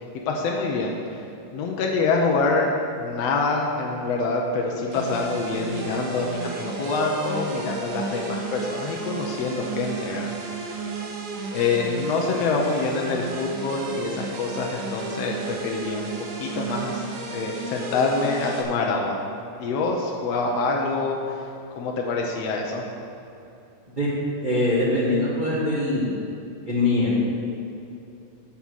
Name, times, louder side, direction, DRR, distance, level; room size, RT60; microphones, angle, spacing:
voice 1, 0.2-1.3 1.5-2.7 3.0-10.6 11.5-19.2 19.6-22.8, left 3 dB, 70° left, 0 dB, 1.6 m, -26 dB
sound 1, 4.9-18.6, right 4 dB, 80° right, 2.7 m, -33 dB
voice 2, 24.4-26.1 26.7-27.1, left 2 dB, 50° right, -7 dB, 0.5 m, -22 dB
9.7 x 7.1 x 6.4 m, 2.8 s
omnidirectional pair, 3.8 m